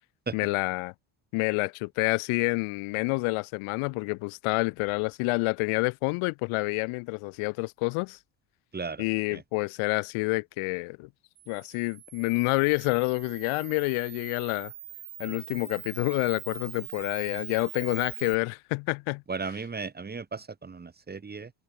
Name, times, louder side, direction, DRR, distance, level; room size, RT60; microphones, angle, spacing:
voice 1, 0.3-0.9 1.3-8.2 9.0-11.1 11.5-14.7 15.2-19.2, left 27 dB, 80° left, 0.8 m, -28 dB
voice 2, 8.7-9.0 9.3-9.4 19.3-21.5, right 4 dB, 20° right, 3.2 m, -35 dB
Camera, 11.4-18.4, right 13 dB, 45° right, 1.3 m, -43 dB
open air
cardioid pair, 150°, 50 cm